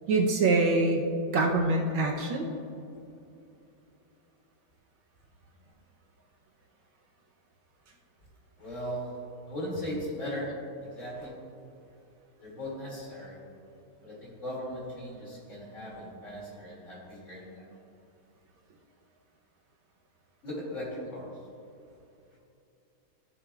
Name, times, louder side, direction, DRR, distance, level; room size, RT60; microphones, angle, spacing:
voice 1, 0.1-1.0 1.3-2.5, right 3 dB, 70° right, 0 dB, 1.5 m, -24 dB
voice 2, 8.6-9.1 9.5-10.5 10.8-11.3 12.4-13.4 14.0-17.5 20.4-21.3, equal, 35° left, -5 dB, 2.6 m, -38 dB
15.0 x 7.5 x 2.3 m, 2.7 s
omnidirectional pair, 2.4 m